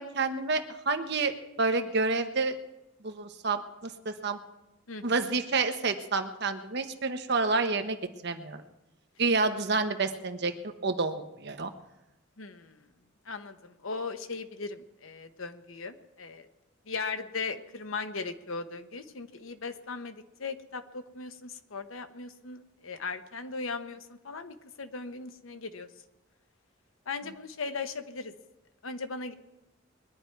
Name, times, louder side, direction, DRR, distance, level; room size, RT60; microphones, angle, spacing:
voice 1, 0.0-2.6 3.0-4.4 5.0-8.0 8.2-8.6 9.2-10.5 10.8-11.7, right 3 dB, 55° right, 7 dB, 1.1 m, -29 dB
voice 2, 12.4-12.9 13.3-16.5 16.9-25.9 27.1-28.3 28.8-29.3, left 4 dB, 80° left, 9 dB, 1.0 m, -38 dB
21.5 x 10.5 x 4.6 m, 0.97 s
head